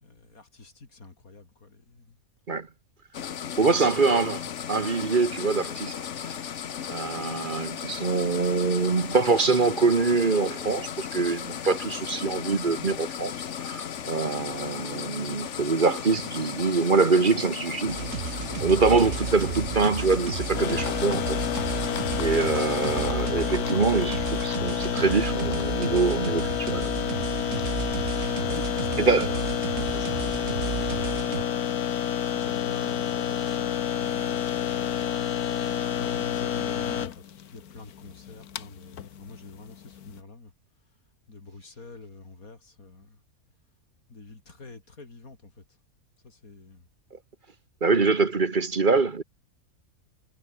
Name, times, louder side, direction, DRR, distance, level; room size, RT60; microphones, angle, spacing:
voice 1, 0.0-2.2 3.4-3.8 28.4-31.6 32.3-35.0 35.9-37.2 37.5-40.5 41.3-43.2 44.1-45.6 46.2-46.9, left 3 dB, 70° left, 4.1 m, -45 dB
sound 1, 3.1-23.1, left 8 dB, 55° left, 1.2 m, -36 dB
voice 2, 3.6-6.4 6.9-13.3 13.6-18.1 18.6-21.4 22.2-26.9 29.0-29.4 47.1-47.2 47.8-49.2, right 4 dB, 35° right, 1.4 m, -24 dB
sound 2, 17.9-31.4, right 6 dB, 50° right, 1.7 m, -33 dB
sound 3, 20.5-40.2, left 9 dB, 90° left, 1.6 m, -29 dB
omnidirectional pair, 1.5 m